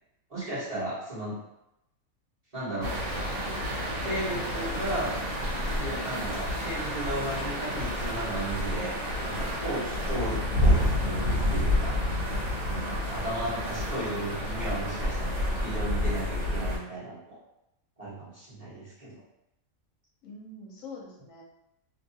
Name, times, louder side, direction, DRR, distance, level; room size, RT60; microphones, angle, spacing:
voice 1, 0.3-1.4 2.5-3.0 4.0-5.1 5.8-8.9 9.2-11.9 12.7-17.4 18.0-19.2, right 1 dB, 30° right, -12 dB, 1.1 m, -35 dB
sound 1, 2.8-16.8, left 1 dB, 70° right, 1.3 m, -29 dB
voice 2, 12.8-13.2 20.2-21.4, left 3 dB, 75° left, -2 dB, 1.0 m, -45 dB
2.8 x 2.3 x 2.7 m, 0.87 s
omnidirectional pair, 1.5 m